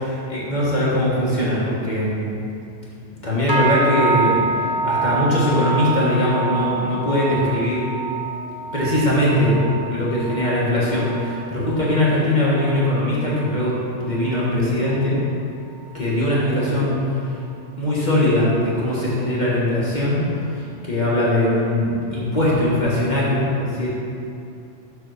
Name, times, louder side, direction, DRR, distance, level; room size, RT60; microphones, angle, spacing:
voice 1, 0.3-2.3 3.2-7.9 8.7-15.2 15.9-17.2 17.8-20.2 20.5-23.9, left 1 dB, 40° left, -8 dB, 1.5 m, -21 dB
sound 1, 3.5-13.0 13.3-13.8 14.2-14.5 15.1-15.2, right 4 dB, 25° right, 0.5 m, -26 dB
6.7 x 4.0 x 6.4 m, 2.6 s
omnidirectional pair, 1.3 m